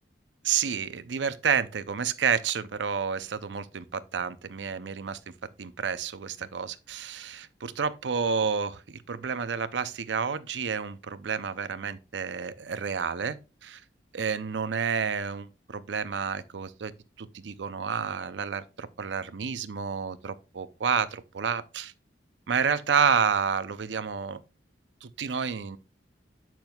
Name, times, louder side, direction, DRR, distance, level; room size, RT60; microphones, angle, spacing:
voice 1, 0.4-5.2 5.6-13.4 13.6-13.8 14.1-16.9 17.2-21.9 22.5-24.4 25.0-25.8, right 6 dB, 85° right, 0.6 m, -30 dB
8.8 x 6.0 x 2.3 m
head